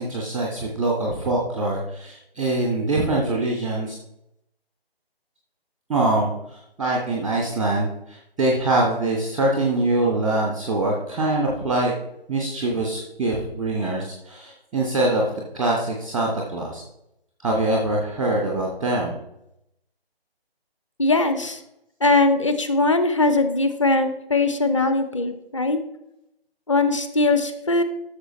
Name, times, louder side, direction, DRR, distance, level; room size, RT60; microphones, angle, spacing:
voice 1, 0.0-3.9 5.9-11.9 12.3-15.3 15.5-16.8 17.4-19.1, right 2 dB, ahead, -2 dB, 0.4 m, -24 dB
voice 2, 21.0-21.6 22.0-25.8 26.7-27.8, left 2 dB, 30° left, 9 dB, 0.7 m, -20 dB
12.0 x 6.5 x 3.1 m, 0.82 s
figure-of-eight pair, 150°, 31 cm